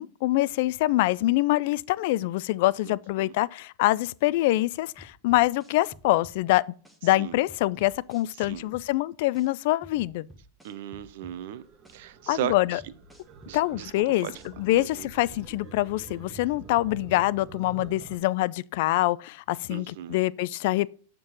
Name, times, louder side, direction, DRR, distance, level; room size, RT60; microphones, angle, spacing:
voice 1, 0.0-6.6 7.0-10.3 12.3-12.8 13.5-14.3 14.6-20.9, left 17 dB, 60° left, 0.3 m, -25 dB
voice 2, 2.8-3.3 7.2-7.4 8.5-8.7 10.6-11.6 11.9-12.8 13.5-13.9 14.2-14.3 14.8-15.1 19.7-20.2, right 12 dB, 65° right, 0.6 m, -36 dB
sound 1, 5.0-6.4 6.8-7.0 7.5-8.9 9.3-9.5 9.8-11.4 11.8-12.0 12.5-13.9 14.3-14.5, right 1 dB, ahead, 1.3 m, -51 dB
sound 2, 11.5-18.2, right 6 dB, 35° right, 1.0 m, -47 dB
7.2 x 3.8 x 6.2 m
supercardioid pair, 135°, 0 cm